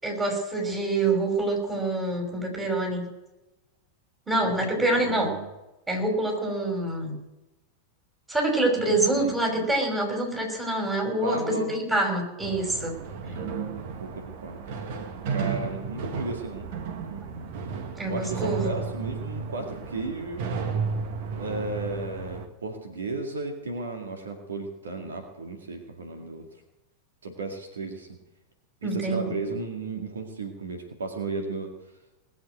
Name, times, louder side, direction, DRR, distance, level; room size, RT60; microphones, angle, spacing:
voice 1, 0.0-3.0 4.3-5.3 5.9-7.2 8.3-13.0 18.0-18.7 28.8-29.3, right 2 dB, 15° right, 0 dB, 5.8 m, -26 dB
voice 2, 5.0-5.5 8.8-9.4 11.2-11.7 13.2-13.7 14.0-14.9 15.3-16.7 17.0-17.3 18.1-20.5 21.3-26.5 27.2-28.2 28.8-31.7, right 3 dB, 70° right, 3 dB, 2.1 m, -35 dB
sound 1, 12.4-22.5, right 5 dB, 50° right, 1.7 m, -33 dB
19.5 x 7.9 x 9.0 m, 0.98 s
figure-of-eight pair, 90°, 0 cm